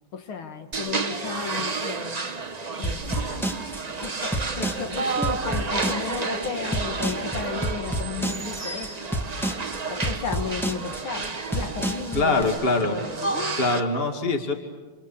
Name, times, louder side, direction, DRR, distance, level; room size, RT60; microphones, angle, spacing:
voice 1, 0.1-2.2 2.8-3.0 3.3-3.6 4.0-9.1 9.9-13.5, left 6 dB, 85° left, 2.5 m, -34 dB
sound 1, 0.7-13.8, right 4 dB, 30° right, 0.8 m, -31 dB
sound 2, 2.8-12.4, right 1 dB, ahead, 1.5 m, -29 dB
voice 2, 12.1-13.0 13.6-14.5, left 3 dB, 30° left, 2.5 m, -23 dB
29.5 x 27.0 x 7.2 m
omnidirectional pair, 2.2 m